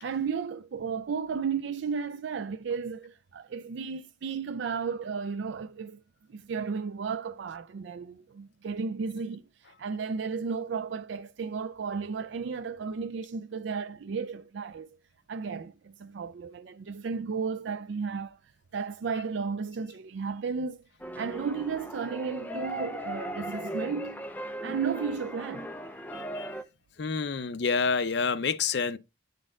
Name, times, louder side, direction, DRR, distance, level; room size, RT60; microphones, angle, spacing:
voice 1, 0.0-6.0 6.3-15.0 15.3-18.4 18.7-20.8 21.1-24.2 24.6-25.7, right 5 dB, 65° right, 0.4 m, -34 dB
sound 1, 21.0-26.6, equal, 10° left, 0.5 m, -38 dB
voice 2, 26.2-26.5 27.0-29.0, left 5 dB, 60° left, 0.5 m, -28 dB
8.9 x 4.1 x 3.7 m
head